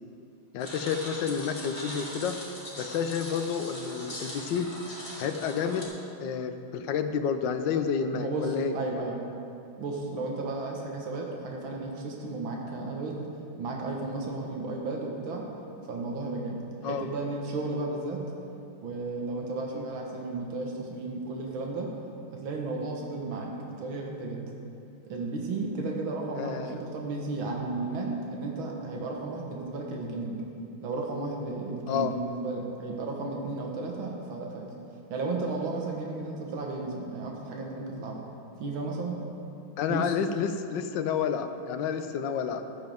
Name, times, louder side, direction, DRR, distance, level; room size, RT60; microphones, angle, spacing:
voice 1, 0.5-2.4 2.8-4.7 5.2-5.9 6.2-8.7 16.8-17.1 19.7-19.9 26.4-26.8 31.9-32.1 39.8-42.7, left 7 dB, 70° left, 8 dB, 1.2 m, -30 dB
sound 1, 0.6-5.8, equal, 15° left, 2.6 m, -41 dB
voice 2, 8.1-9.2 9.8-13.3 13.6-15.4 15.9-18.2 18.8-21.9 22.3-23.5 23.8-24.4 25.1-30.4 30.8-34.7 35.1-38.2 38.6-39.2 39.9-40.1, right 3 dB, 70° right, 0 dB, 2.1 m, -33 dB
14.5 x 11.5 x 3.5 m, 2.6 s
omnidirectional pair, 2.3 m